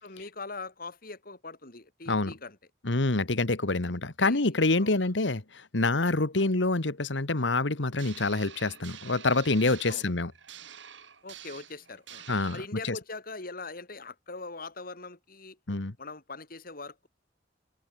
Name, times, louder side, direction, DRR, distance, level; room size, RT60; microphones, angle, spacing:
voice 1, 0.0-2.6 4.2-4.4 4.8-5.0 6.4-6.5 9.9-10.1 11.2-12.2 12.5-15.6 16.0-17.1, left 3 dB, 50° left, 3.2 m, -42 dB
voice 2, 2.8-10.3 12.3-12.6 15.7-15.9, left 2 dB, 80° left, 1.6 m, -26 dB
sound 1, 8.0-12.7, right 9 dB, 80° right, 5.5 m, -48 dB
head